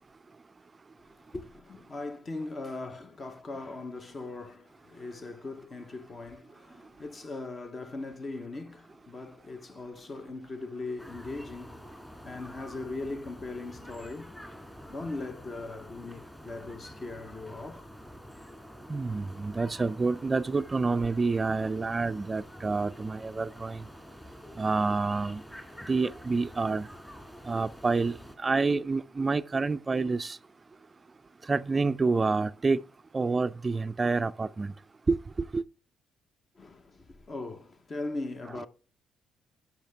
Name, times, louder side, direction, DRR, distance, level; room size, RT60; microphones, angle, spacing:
voice 1, 1.1-14.4 14.9-17.9 36.5-38.7, left 2 dB, 35° left, 0.8 m, -40 dB
sound 1, 11.0-28.3, equal, 10° left, 2.0 m, -48 dB
voice 2, 18.9-23.8 24.6-25.4 25.9-26.9 27.5-30.4 31.5-32.8 33.1-34.7 35.1-35.2 35.5-35.6, right 3 dB, 25° right, 0.3 m, -28 dB
10.5 x 5.8 x 3.4 m
cardioid pair, 90°, 0 cm